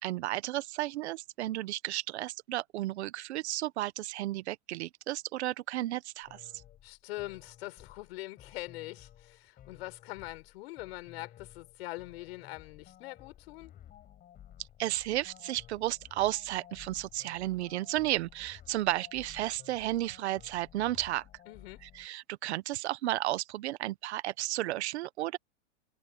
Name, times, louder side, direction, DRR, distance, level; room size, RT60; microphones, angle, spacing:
voice 1, 0.0-6.5 14.8-21.2 21.9-25.4, right 15 dB, 60° right, 1.1 m, -33 dB
sound 1, 6.2-22.1, left 11 dB, 25° left, 7.8 m, -55 dB
voice 2, 6.8-13.7 21.5-21.8, left 19 dB, 55° left, 6.2 m, -43 dB
supercardioid pair, 150°, 37 cm